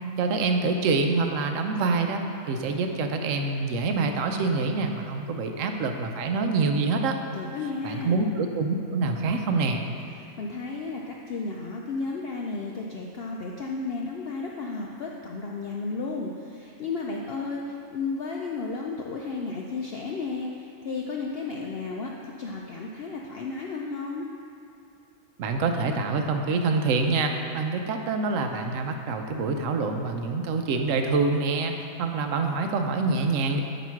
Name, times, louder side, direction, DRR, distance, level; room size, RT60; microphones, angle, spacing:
voice 1, 0.2-7.2 7.8-9.9 25.4-33.6, right 3 dB, 70° right, 5 dB, 0.9 m, -26 dB
voice 2, 7.3-8.3 10.2-24.3, left 4 dB, 70° left, -1 dB, 0.5 m, -33 dB
9.0 x 3.0 x 5.7 m, 2.7 s
omnidirectional pair, 1.5 m